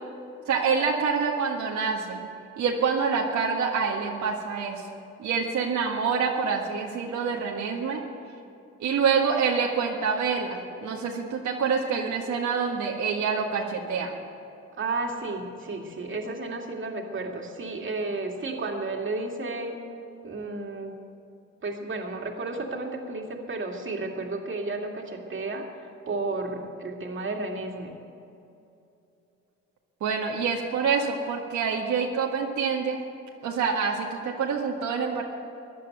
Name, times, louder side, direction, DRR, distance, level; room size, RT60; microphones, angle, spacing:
voice 1, 0.5-2.2 2.6-4.9 5.2-8.0 8.8-14.1 30.0-33.0 33.4-35.2, right 5 dB, 75° right, -1 dB, 1.8 m, -26 dB
voice 2, 14.8-19.8 20.2-21.0 21.6-25.7 26.1-27.9, right 3 dB, 40° right, 1 dB, 2.5 m, -32 dB
16.0 x 11.0 x 7.9 m, 2.7 s
cardioid pair, 90°, 30 cm